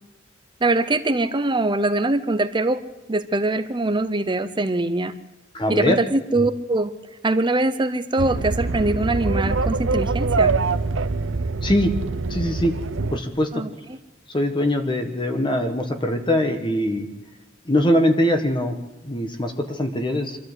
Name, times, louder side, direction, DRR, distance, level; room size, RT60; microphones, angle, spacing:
voice 1, 0.6-2.8 3.1-5.1 5.7-6.9 7.2-10.5 13.5-13.7, right 2 dB, 25° right, 11 dB, 0.7 m, -22 dB
voice 2, 5.5-6.0 11.6-11.9 12.3-12.7 13.1-13.6 14.3-17.1 17.7-18.7 19.0-20.4, left 1 dB, 25° left, 5 dB, 1.4 m, -22 dB
sound 1, 8.2-13.2, right 3 dB, 90° right, 0.8 m, -24 dB
25.0 x 13.0 x 8.1 m, 1.1 s
head